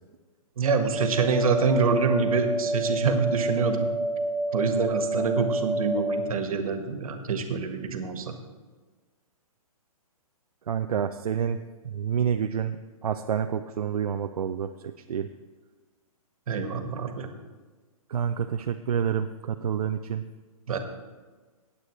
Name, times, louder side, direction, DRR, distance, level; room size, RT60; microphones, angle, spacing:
voice 1, 0.6-3.9 4.5-8.3 16.5-17.3 20.7-20.8, right 5 dB, 70° right, 6 dB, 1.5 m, -26 dB
sound 1, 0.8-6.2, right 2 dB, 10° left, 3.8 m, -28 dB
voice 2, 10.7-11.6 11.9-12.8 13.0-15.3 18.1-20.2, right 8 dB, 90° right, 7 dB, 0.5 m, -28 dB
17.0 x 8.4 x 3.2 m, 1.3 s
hypercardioid pair, 145°, 19 cm